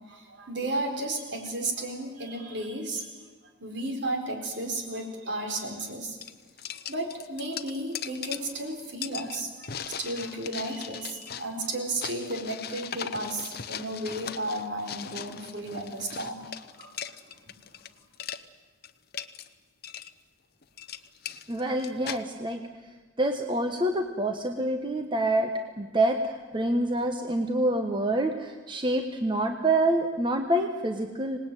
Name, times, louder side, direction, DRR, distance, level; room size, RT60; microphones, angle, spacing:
voice 1, 0.1-3.1 3.6-6.2 6.6-16.9 17.4-17.5, right 1 dB, 60° right, 4 dB, 4.4 m, -33 dB
sound 1, 5.8-5.9 6.2-17.9 18.1-18.4 18.8-19.5 19.8-20.1 20.6-22.2, left 8 dB, 50° left, 0.9 m, -39 dB
voice 2, 21.5-22.6 23.2-25.5 25.8-31.4, right 1 dB, 25° right, 5 dB, 1.3 m, -27 dB
26.0 x 19.5 x 9.2 m, 1.3 s
head